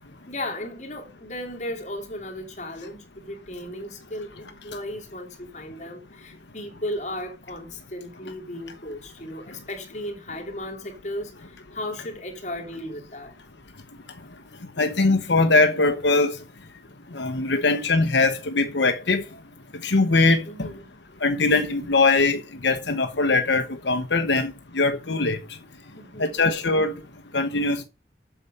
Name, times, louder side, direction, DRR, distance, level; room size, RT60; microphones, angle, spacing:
voice 1, 0.3-13.3 20.4-21.2 25.9-26.4, left 1 dB, 40° left, 3.0 m, -35 dB
voice 2, 14.8-16.4 17.1-19.2 19.8-20.7 21.2-25.4 26.2-26.9 27.3-27.8, left 3 dB, 85° left, 1.0 m, -21 dB
8.1 x 7.0 x 5.5 m
head